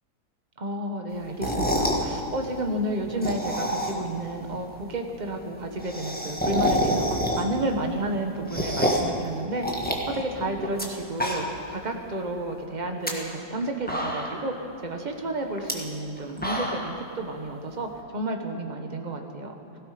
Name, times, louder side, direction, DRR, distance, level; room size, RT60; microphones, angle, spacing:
voice 1, 0.6-9.8 10.1-19.5, right 1 dB, 25° right, 4 dB, 1.2 m, -31 dB
sound 1, 1.3-2.1 3.0-4.2 4.5-4.6 4.8-4.9 5.1-5.2 5.5-7.7 8.1-9.2 9.6-10.9 11.1-11.7 12.1-12.2 12.8-13.1 13.6-13.7 13.9-14.5 15.6-15.7 16.2-17.0, equal, 5° left, 1.4 m, -27 dB
17.0 x 16.5 x 5.1 m, 2.9 s
omnidirectional pair, 2.0 m